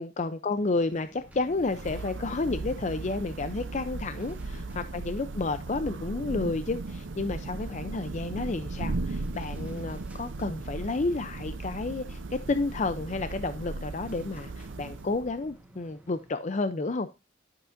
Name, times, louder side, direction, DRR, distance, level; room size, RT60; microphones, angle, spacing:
voice 1, 0.0-4.4 4.9-17.1, left 3 dB, 40° left, 0.5 m, -31 dB
sound 1, 0.5-16.3, right 1 dB, 10° right, 1.3 m, -55 dB
Thunder / Rain, 1.2-15.6, right 3 dB, 85° right, 0.6 m, -37 dB
11.5 x 7.4 x 2.6 m
head